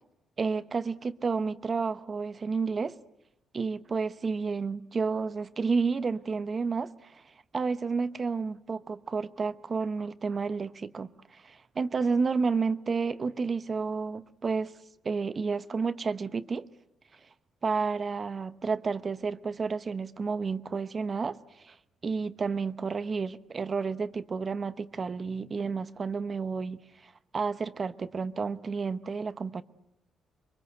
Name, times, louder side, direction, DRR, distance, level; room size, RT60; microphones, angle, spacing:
voice 1, 0.4-3.0 3.5-7.2 7.5-14.7 15.0-16.7 17.6-21.8 22.0-29.6, right 4 dB, 40° right, 1.0 m, -31 dB
26.5 x 23.0 x 8.0 m
cardioid pair, 90°, 0 cm